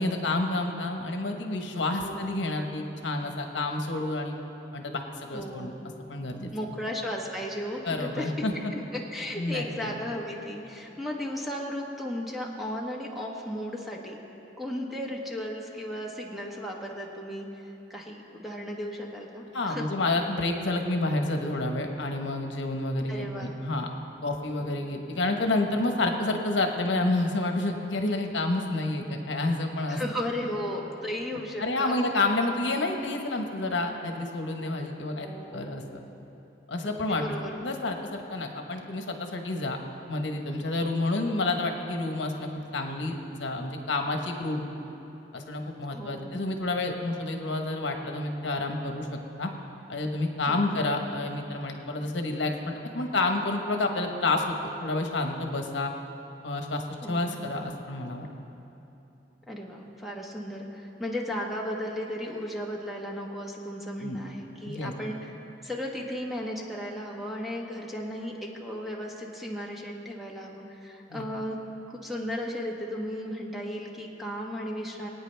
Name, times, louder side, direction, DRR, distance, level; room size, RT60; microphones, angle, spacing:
voice 1, 0.0-4.3 4.7-5.7 6.1-6.5 7.8-8.7 9.4-9.9 19.5-23.9 24.2-30.0 31.6-35.3 35.5-36.0 36.7-37.3 37.6-39.8 40.1-44.7 45.3-49.1 49.4-49.5 49.9-55.9 56.4-56.8 57.1-58.3 64.0-64.2 64.7-64.9 71.1-71.3, left 2 dB, 75° left, 3 dB, 1.2 m, -29 dB
voice 2, 2.0-2.4 5.3-5.7 6.5-8.5 8.7-14.2 14.6-17.6 17.9-19.9 23.1-23.6 24.6-24.9 29.9-32.0 35.2-35.8 36.8-37.7 45.9-46.4 50.5-50.8 57.0-57.4 59.5-65.3 65.6-71.6 71.9-75.1, left 1 dB, ahead, -2 dB, 1.3 m, -35 dB
25.0 x 9.1 x 3.4 m, 3.0 s
head